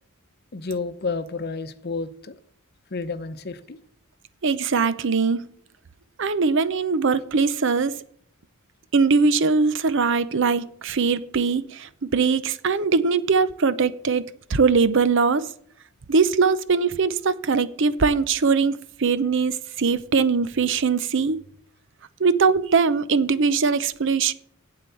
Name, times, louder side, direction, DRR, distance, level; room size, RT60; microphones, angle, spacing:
voice 1, 0.5-2.4 2.9-3.8, left 4 dB, 50° left, 0.8 m, -30 dB
voice 2, 4.4-5.5 6.2-8.0 8.9-14.2 14.5-15.5 16.1-21.4 22.2-24.3, right 5 dB, 60° right, 0.7 m, -21 dB
8.7 x 8.0 x 6.8 m
head